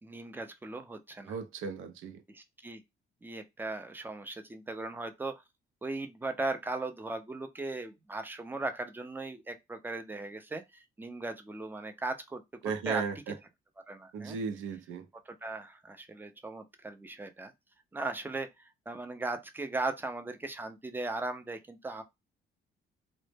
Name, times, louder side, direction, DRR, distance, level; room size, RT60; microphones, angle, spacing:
voice 1, 0.0-1.3 2.3-2.8 3.2-5.4 5.8-12.4 12.9-13.0 13.9-14.4 15.3-17.5 17.9-22.0, right 2 dB, 10° right, 0.5 m, -38 dB
voice 2, 1.2-2.2 12.6-13.4 14.1-15.1, right 5 dB, 80° right, 0.5 m, -35 dB
2.0 x 2.0 x 3.2 m
cardioid pair, 90°, 20 cm